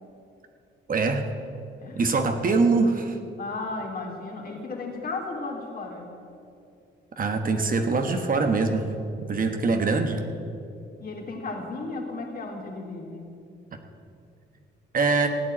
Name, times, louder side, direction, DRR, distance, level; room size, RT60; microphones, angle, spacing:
voice 1, 0.9-1.2 2.0-3.2 7.2-8.9 9.3-10.2 14.9-15.3, right 3 dB, 45° right, 5 dB, 1.5 m, -23 dB
voice 2, 3.4-6.1 11.0-13.3, left 3 dB, 45° left, 1 dB, 3.2 m, -35 dB
16.0 x 8.5 x 8.7 m, 2.6 s
cardioid pair, 90°, 20 cm